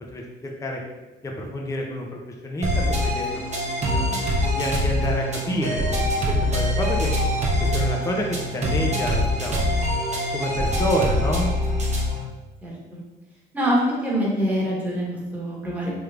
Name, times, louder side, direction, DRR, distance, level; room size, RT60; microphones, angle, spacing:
voice 1, 0.1-0.8 1.2-3.4 3.8-4.0 4.5-7.1 7.6-9.6 10.3-11.5, left 1 dB, 15° left, 0 dB, 0.5 m, -28 dB
sound 1, 2.6-12.2, left 1 dB, 35° right, 0.8 m, -24 dB
voice 2, 13.5-15.1 15.3-15.9, equal, 10° right, -6 dB, 1.2 m, -24 dB
3.3 x 3.1 x 2.4 m, 1.1 s
cardioid pair, 90°, 20 cm